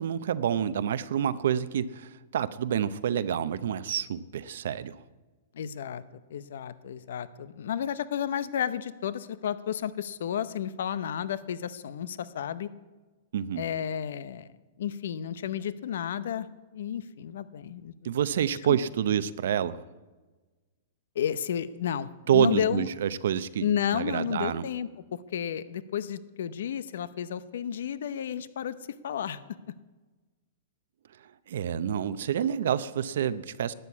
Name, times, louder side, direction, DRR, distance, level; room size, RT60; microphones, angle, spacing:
voice 1, 0.0-5.0 13.3-13.6 18.0-19.8 22.3-23.7 23.9-24.6 31.5-33.7, right 9 dB, 75° right, 14 dB, 0.7 m, -28 dB
voice 2, 5.5-6.0 6.3-12.7 13.6-14.5 14.8-16.5 16.7-18.1 21.1-22.9 23.6-28.8 29.0-29.4, left 9 dB, 75° left, 16 dB, 0.7 m, -32 dB
12.0 x 10.0 x 8.4 m, 1.2 s
hypercardioid pair, 150°, 0 cm